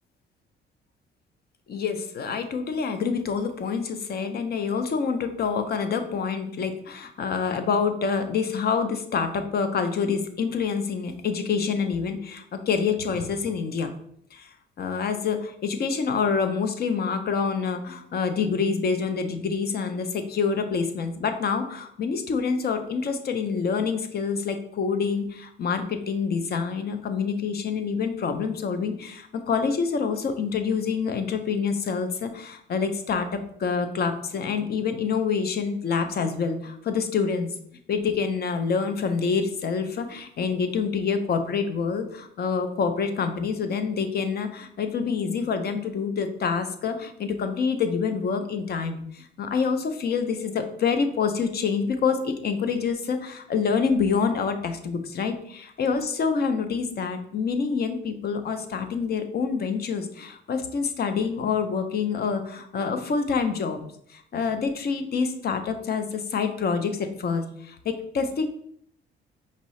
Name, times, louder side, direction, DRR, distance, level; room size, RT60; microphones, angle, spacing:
voice 1, 1.7-13.9 14.3-14.5 14.8-37.5 37.9-63.8 64.1-68.5, left 5 dB, 55° left, 8 dB, 0.6 m, -27 dB
5.2 x 2.7 x 3.1 m, 0.67 s
cardioid pair, 90°, 20 cm